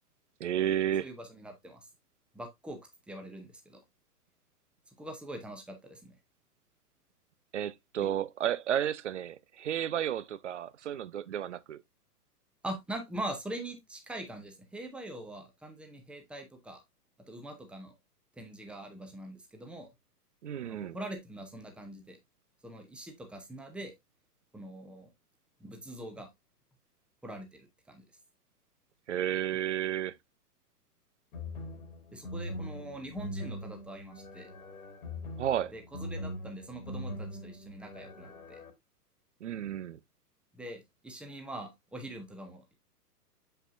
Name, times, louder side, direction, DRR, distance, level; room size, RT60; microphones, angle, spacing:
voice 1, 0.4-1.1 7.5-11.8 20.4-21.0 29.1-30.1 35.4-35.7 39.4-40.0, right 10 dB, 50° right, 0.5 m, -32 dB
voice 2, 1.0-1.9 2.3-2.8 3.1-3.8 5.0-6.2 12.6-16.8 17.3-17.9 18.4-19.9 20.6-22.2 22.6-23.9 24.5-25.1 25.6-26.3 27.2-28.0 32.1-34.5 35.7-38.6 40.5-42.7, right 1 dB, ahead, 0.8 m, -43 dB
sound 1, 31.3-38.7, left 1 dB, 60° left, 1.8 m, -42 dB
6.8 x 5.6 x 2.5 m
figure-of-eight pair, 110°, 48 cm